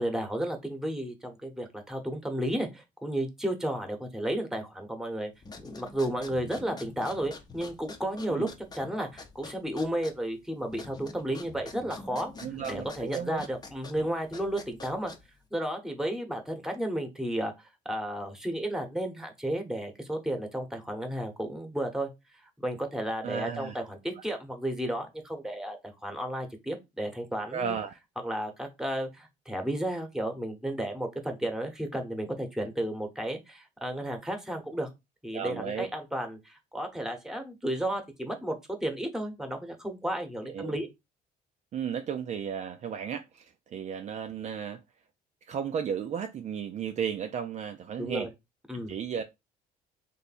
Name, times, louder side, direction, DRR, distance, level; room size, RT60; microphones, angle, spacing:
voice 1, 0.0-5.3 5.6-8.5 8.7-12.3 12.7-15.1 15.5-17.5 17.8-22.1 22.6-27.7 28.2-34.9 35.2-40.9 48.0-48.3 48.7-49.0, right 1 dB, 5° right, 1.0 m, -33 dB
sound 1, 5.4-15.5, left 3 dB, 25° left, 0.7 m, -46 dB
voice 2, 12.4-13.5 23.2-23.8 24.1-24.2 27.5-28.0 35.3-35.9 40.4-40.8 41.7-44.8 45.5-48.3 48.9-49.2, right 7 dB, 45° right, 0.4 m, -34 dB
3.3 x 2.7 x 4.2 m
cardioid pair, 110°, 17 cm